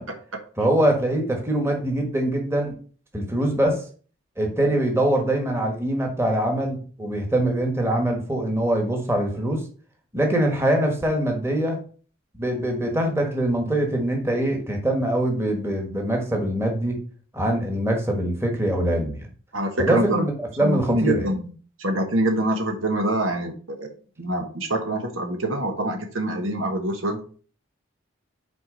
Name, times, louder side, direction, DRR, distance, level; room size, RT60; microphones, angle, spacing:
voice 1, 0.6-2.7 3.1-3.8 4.4-9.6 10.1-11.8 12.3-17.0 17.3-19.1 19.8-20.3 20.6-21.3, right 1 dB, 15° right, 2 dB, 1.5 m, -23 dB
voice 2, 19.5-20.3 20.6-21.5 21.8-23.9 24.2-27.2, right 1 dB, 75° right, 4 dB, 1.3 m, -25 dB
6.1 x 4.6 x 5.1 m, 0.42 s
head